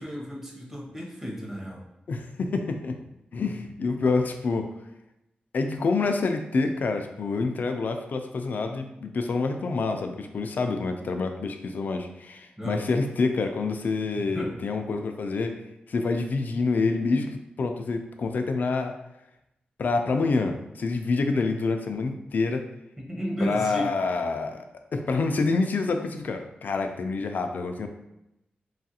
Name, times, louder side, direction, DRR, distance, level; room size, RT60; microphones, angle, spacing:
voice 1, 0.0-1.8 12.6-12.9 14.2-14.6 23.0-23.9, equal, 10° right, -3 dB, 0.7 m, -33 dB
voice 2, 2.1-3.0 3.3-4.7 5.5-18.9 19.8-22.7 23.4-24.7 24.9-27.9, left 3 dB, 60° left, 6 dB, 0.3 m, -27 dB
3.2 x 2.4 x 2.7 m, 0.88 s
wide cardioid pair, 105°, 3 cm